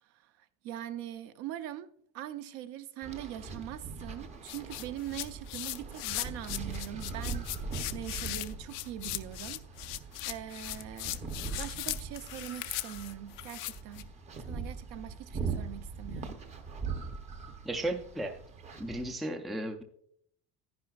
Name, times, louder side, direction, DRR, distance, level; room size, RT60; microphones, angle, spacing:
voice 1, 0.0-1.9 2.1-9.8 10.2-14.1 14.4-16.4, right 11 dB, 55° right, 0.6 m, -42 dB
sound 1, 3.0-19.1, right 4 dB, 25° right, 0.8 m, -41 dB
sound 2, 4.5-14.0, left 19 dB, 80° left, 0.5 m, -38 dB
voice 2, 17.6-18.4 18.8-19.8, right 1 dB, ahead, 0.4 m, -34 dB
10.5 x 10.5 x 2.4 m
cardioid pair, 165°, 30 cm